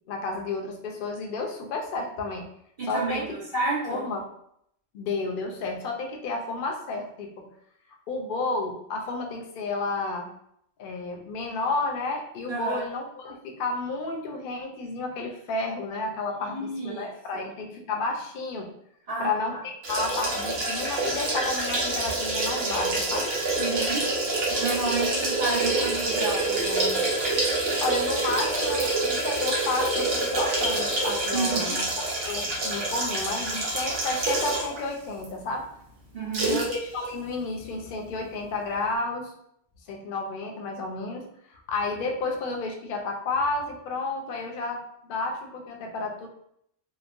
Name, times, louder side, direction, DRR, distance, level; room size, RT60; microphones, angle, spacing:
voice 1, 0.1-2.5 2.9-3.4 3.8-4.2 4.9-7.5 8.1-10.3 10.8-18.7 19.2-23.4 25.0-25.1 27.8-35.7 36.5-39.3 39.9-46.3, left 3 dB, 60° left, 2 dB, 0.6 m, -31 dB
voice 2, 2.8-3.2 3.5-4.0 12.5-12.8 16.5-17.1 17.3-17.5 19.1-19.3 23.6-24.0 24.5-27.0 31.3-31.7 36.1-36.6, right 3 dB, 40° right, -7 dB, 1.0 m, -30 dB
sound 1, 19.8-34.8 35.2-35.3 36.3-36.8 37.0-37.1, right 2 dB, 70° right, 0.9 m, -27 dB
2.9 x 2.0 x 2.4 m, 0.72 s
omnidirectional pair, 1.1 m